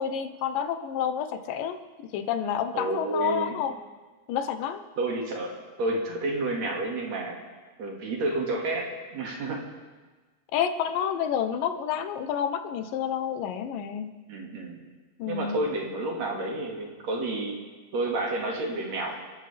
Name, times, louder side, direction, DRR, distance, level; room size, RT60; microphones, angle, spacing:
voice 1, 0.0-1.8 2.1-3.7 4.3-4.8 10.5-14.2 15.2-15.6, left 8 dB, 85° left, 9 dB, 2.6 m, -29 dB
voice 2, 2.7-3.6 5.0-7.4 7.8-9.6 14.3-14.8 15.3-17.6 17.9-19.2, right 2 dB, 55° right, -1 dB, 3.2 m, -30 dB
29.0 x 13.5 x 3.4 m, 1.3 s
omnidirectional pair, 3.8 m